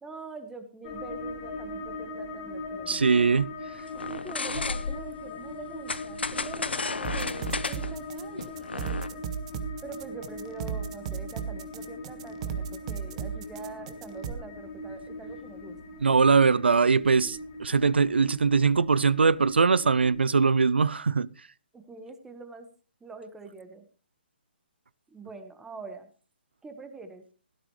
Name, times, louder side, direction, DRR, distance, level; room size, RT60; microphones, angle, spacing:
voice 1, 0.0-3.3 3.9-9.2 9.8-15.8 21.7-22.7 23.0-23.9 25.1-26.1 26.6-27.2, right 3 dB, 10° right, 1.5 m, -44 dB
sound 1, 0.8-20.2, left 2 dB, 30° left, 2.2 m, -41 dB
voice 2, 2.9-3.5 16.0-21.3, right 5 dB, 85° right, 0.5 m, -22 dB
sound 2, 3.9-5.2 5.9-9.1, left 4 dB, 85° left, 0.9 m, -33 dB
sound 3, 7.0-14.3, right 7 dB, 40° right, 1.5 m, -34 dB
16.5 x 13.0 x 3.2 m
hypercardioid pair, 145°, 6 cm